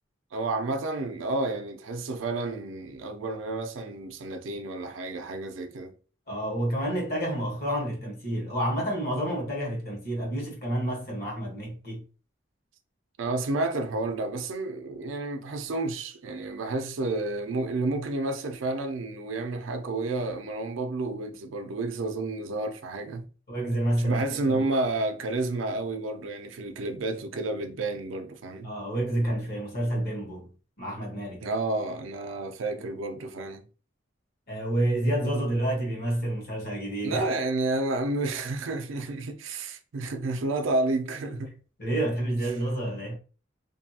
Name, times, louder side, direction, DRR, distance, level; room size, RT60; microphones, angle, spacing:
voice 1, 0.3-5.9 13.2-23.3 24.0-28.7 31.4-33.7 37.0-41.5, right 2 dB, 80° right, 0.5 m, -30 dB
voice 2, 6.3-12.0 23.5-24.6 28.6-30.5 30.8-31.5 34.5-37.2 41.8-43.1, right 1 dB, 50° left, 1.2 m, -29 dB
2.6 x 2.3 x 2.7 m
head